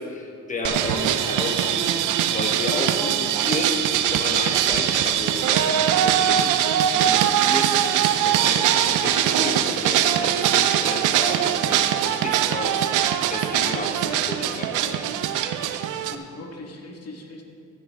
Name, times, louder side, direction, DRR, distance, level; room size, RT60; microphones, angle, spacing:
voice 1, 0.0-2.0 2.3-3.8 4.1-15.1, left 2 dB, 25° left, 2 dB, 1.5 m, -32 dB
sound 1, 0.6-16.2, right 10 dB, 85° right, 0.6 m, -22 dB
voice 2, 15.9-17.4, left 2 dB, 55° left, 1 dB, 2.0 m, -40 dB
15.0 x 9.9 x 3.7 m, 2.6 s
cardioid pair, 90°, 30 cm